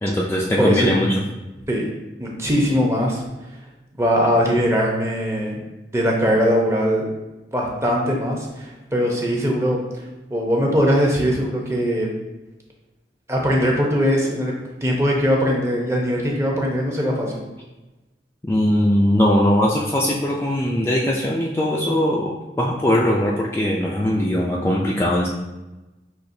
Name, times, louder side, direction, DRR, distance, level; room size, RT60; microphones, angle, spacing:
voice 1, 0.0-1.2 18.4-25.3, left 1 dB, 15° left, -4 dB, 0.3 m, -20 dB
voice 2, 0.6-0.9 1.7-1.9 2.2-3.2 4.0-5.6 5.9-7.1 7.5-10.0 10.3-12.1 13.3-14.5 14.8-17.4, equal, 15° right, -1 dB, 0.7 m, -20 dB
5.8 x 3.1 x 2.6 m, 1.1 s
head